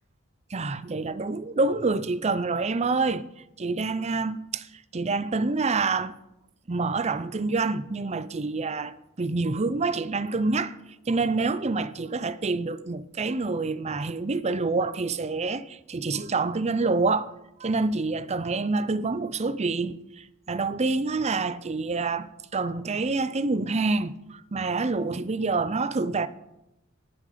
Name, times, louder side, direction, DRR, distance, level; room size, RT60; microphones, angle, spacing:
voice 1, 0.5-3.2 3.6-4.7 4.9-6.1 6.7-10.7 11.1-17.3 17.6-26.3, right 3 dB, 30° right, 0.6 m, -27 dB
19.0 x 7.4 x 5.1 m
head